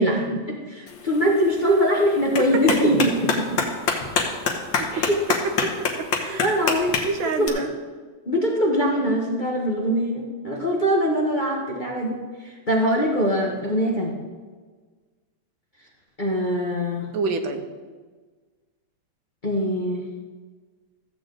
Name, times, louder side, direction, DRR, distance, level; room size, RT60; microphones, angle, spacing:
voice 1, 0.0-3.6 4.9-5.2 6.4-7.0 7.4-7.6 8.3-14.2 16.2-17.1 19.4-20.1, equal, 30° left, -2 dB, 0.9 m, -23 dB
Clapping, 0.9-7.5, left 5 dB, 70° left, 1.9 m, -27 dB
voice 2, 6.0-6.5 7.0-7.7 17.1-17.6, right 4 dB, 80° right, 7 dB, 1.6 m, -27 dB
14.5 x 7.9 x 3.8 m, 1.4 s
omnidirectional pair, 2.2 m